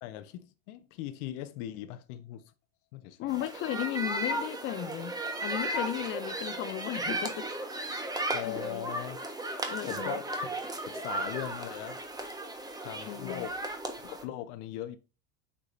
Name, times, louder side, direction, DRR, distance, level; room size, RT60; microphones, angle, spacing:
voice 1, 0.0-2.4 2.9-3.3 8.3-9.2 9.9-10.6 10.9-12.0 12.8-13.6 14.0-15.0, left 12 dB, 65° left, 1.2 m, -39 dB
voice 2, 3.2-7.5 7.8-7.9 8.4-8.8 9.7-10.2 13.0-13.5, left 14 dB, 30° left, 0.5 m, -35 dB
sound 1, 3.3-14.2, right 1 dB, 10° right, 1.3 m, -35 dB
8.5 x 5.2 x 2.6 m
supercardioid pair, 135°, 40 cm